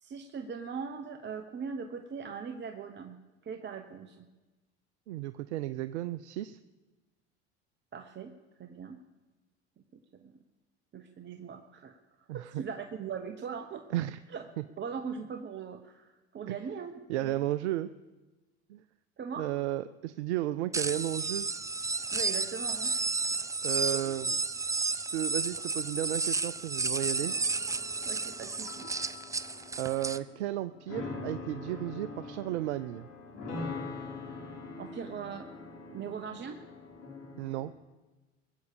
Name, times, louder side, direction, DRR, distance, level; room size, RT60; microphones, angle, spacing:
voice 1, 0.0-4.3 7.9-8.3 8.6-9.0 10.2-10.3 10.9-12.0 12.3-13.8 14.3-14.4 14.8-17.5 19.2-19.5 22.1-22.9 23.9-24.1 28.1-29.2 34.8-35.5 35.9-36.6, right 6 dB, 30° right, 7 dB, 1.0 m, -40 dB
voice 2, 5.1-6.6 12.3-12.6 13.9-14.2 14.6-14.7 16.5-16.6 17.1-17.9 18.7-18.8 19.4-21.5 23.6-24.4 25.1-27.4 29.8-33.1 37.4-37.7, right 14 dB, 75° right, 14 dB, 0.6 m, -33 dB
sound 1, 20.7-30.2, right 3 dB, 10° right, 0.5 m, -32 dB
sound 2, 27.1-37.7, left 3 dB, 60° left, 4.5 m, -43 dB
21.5 x 8.1 x 6.8 m, 1.2 s
hypercardioid pair, 75°, 34 cm